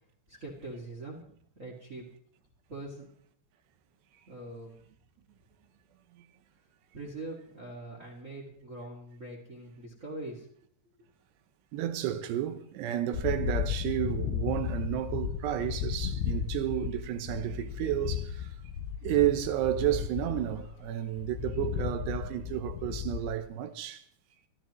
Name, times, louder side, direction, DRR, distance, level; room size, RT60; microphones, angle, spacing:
voice 1, 0.3-2.0 2.7-3.1 4.3-4.8 6.9-10.5, right 2 dB, 30° right, 1.6 m, -43 dB
voice 2, 11.7-18.6 19.0-24.0, right 12 dB, 80° right, 3.0 m, -31 dB
sound 1, 13.1-23.4, left 9 dB, 80° left, 2.7 m, -35 dB
26.5 x 13.0 x 3.1 m
omnidirectional pair, 4.9 m